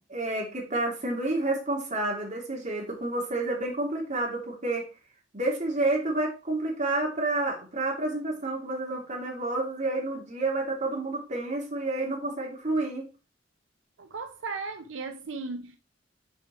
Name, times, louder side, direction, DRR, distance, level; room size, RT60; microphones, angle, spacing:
voice 1, 0.1-4.9 5.3-13.1, right 2 dB, 40° right, 2.8 m, -29 dB
voice 2, 14.0-15.8, right 4 dB, 80° right, 0.6 m, -36 dB
7.2 x 4.7 x 4.4 m
head